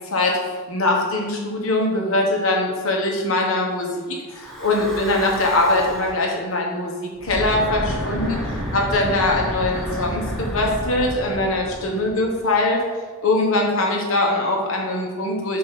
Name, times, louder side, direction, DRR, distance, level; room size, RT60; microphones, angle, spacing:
voice 1, 0.7-12.8 13.2-15.6, left 2 dB, 65° left, 0 dB, 1.3 m, -22 dB
Breathing / Wind, 4.3-6.3 7.1-12.5, equal, ahead, 1.2 m, -30 dB
7.2 x 2.9 x 5.8 m, 1.4 s
head